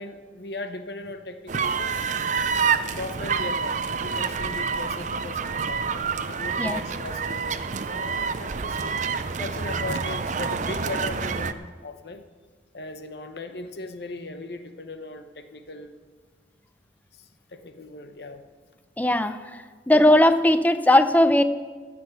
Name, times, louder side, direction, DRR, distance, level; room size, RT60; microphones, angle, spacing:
voice 1, 0.0-2.3 2.9-7.6 7.9-9.0 9.4-12.2 12.7-16.0 17.1-18.4, left 2 dB, 70° left, 8 dB, 0.9 m, -38 dB
sound 1, 1.5-11.5, right 5 dB, 45° right, 0.5 m, -27 dB
voice 2, 19.0-21.4, left 1 dB, 10° left, 11 dB, 0.5 m, -19 dB
15.0 x 6.2 x 9.2 m, 1.5 s
head